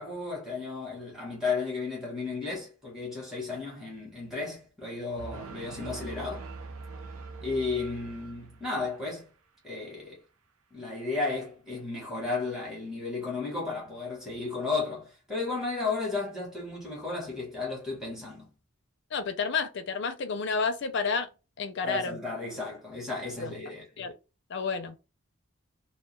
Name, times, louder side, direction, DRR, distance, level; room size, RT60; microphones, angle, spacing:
voice 1, 0.0-6.5 7.4-9.3 9.6-10.2 10.7-18.5 21.8-23.8, left 3 dB, ahead, 0.9 m, -34 dB
sound 1, 5.2-9.0, right 3 dB, 80° right, 0.5 m, -43 dB
voice 2, 19.1-21.3 21.6-22.2 23.4-23.5 24.0-24.1 24.5-25.0, left 5 dB, 55° left, 0.4 m, -30 dB
2.2 x 2.2 x 2.9 m
head